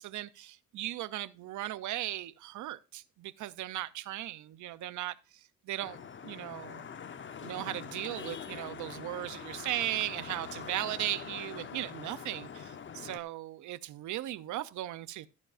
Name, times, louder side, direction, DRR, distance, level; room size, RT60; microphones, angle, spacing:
voice 1, 0.0-6.0 6.2-6.8 7.4-15.3, right 14 dB, 75° right, 0.7 m, -37 dB
Vehicle horn car horn honking / Traffic noise roadway noise, 5.8-13.2, left 7 dB, 40° left, 1.0 m, -44 dB
14.0 x 9.9 x 2.6 m
cardioid pair, 90°, 30 cm